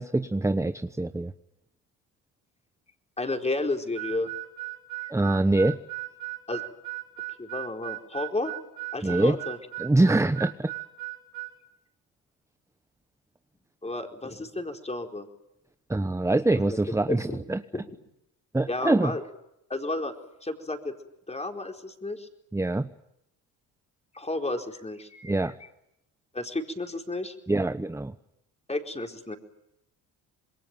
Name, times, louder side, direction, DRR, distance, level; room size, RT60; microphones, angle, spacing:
voice 1, 0.0-1.3 5.1-5.8 9.0-9.4 9.8-10.7 15.9-17.6 18.5-19.1 22.5-22.9 25.2-25.5 27.5-28.1, right 2 dB, 10° right, 11 dB, 1.0 m, -24 dB
voice 2, 3.2-4.3 5.0-5.1 6.5-6.6 7.4-8.5 8.9-9.6 13.8-15.3 16.5-16.8 17.1-17.4 18.7-19.2 19.7-20.1 20.4-20.9 21.3-22.3 24.1-25.3 26.3-27.3 28.7-29.4, left 2 dB, 15° left, 4 dB, 4.5 m, -32 dB
Harmonica, 3.9-11.5, right 19 dB, 65° right, 4.8 m, -37 dB
27.0 x 22.0 x 9.2 m, 0.82 s
supercardioid pair, 80°, 37 cm